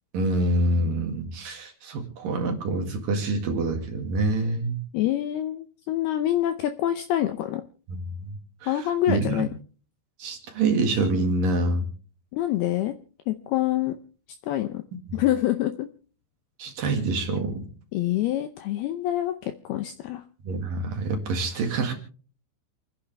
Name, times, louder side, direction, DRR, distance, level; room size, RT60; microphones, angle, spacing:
voice 1, 0.1-4.8 7.9-8.4 8.6-9.5 10.2-11.9 14.9-15.0 16.6-17.7 20.4-21.9, right 2 dB, 55° right, 3 dB, 3.1 m, -26 dB
voice 2, 4.9-7.6 8.7-9.5 12.3-12.9 13.3-13.9 14.4-14.8 15.1-15.9 17.9-20.2, left 13 dB, 80° left, 8 dB, 2.3 m, -26 dB
28.5 x 9.9 x 3.4 m, 0.39 s
omnidirectional pair, 5.3 m